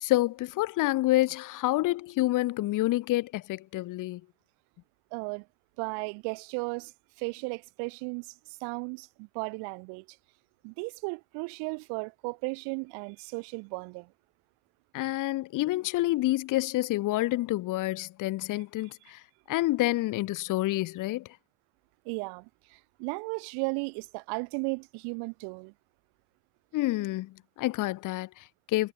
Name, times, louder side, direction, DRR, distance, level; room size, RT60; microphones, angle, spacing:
voice 1, 0.0-4.2 14.9-19.2 19.5-21.3 26.7-28.9, left 17 dB, 50° left, 0.9 m, -28 dB
voice 2, 5.1-5.5 5.8-10.2 10.6-14.1 15.1-15.3 22.0-25.7, right 34 dB, 75° right, 4.8 m, -35 dB
supercardioid pair, 110°, 39 cm